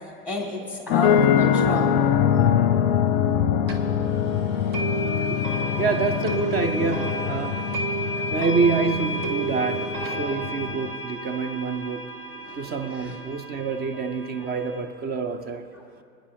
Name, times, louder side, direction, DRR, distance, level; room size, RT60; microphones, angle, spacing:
voice 1, 0.2-2.0 6.7-7.0 12.4-13.2 14.4-14.5 15.8-15.9, left 2 dB, 5° right, 3.5 m, -32 dB
sound 1, 0.9-10.9, left 9 dB, 40° left, 0.7 m, -24 dB
sound 2, 3.7-3.8 4.7-14.8, right 2 dB, 45° right, 1.9 m, -32 dB
voice 2, 5.3-7.8 8.3-12.1 12.6-15.7, right 4 dB, 20° right, 0.7 m, -27 dB
27.5 x 10.0 x 3.4 m
figure-of-eight pair, 90°, 47 cm